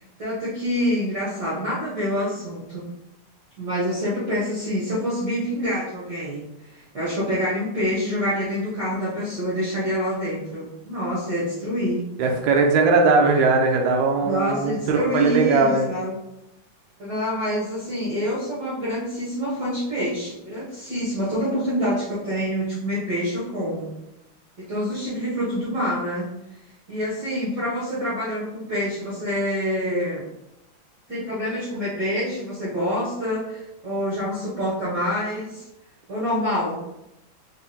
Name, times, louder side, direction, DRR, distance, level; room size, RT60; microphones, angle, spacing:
voice 1, 0.0-2.8 3.6-12.0 14.2-16.1 17.0-23.9 24.7-26.3 26.9-30.2 31.1-35.6 36.1-37.0, equal, 50° right, -9 dB, 1.4 m, -26 dB
voice 2, 12.2-15.9, right 4 dB, 85° right, 2 dB, 2.1 m, -19 dB
5.3 x 3.5 x 2.2 m, 0.89 s
omnidirectional pair, 3.3 m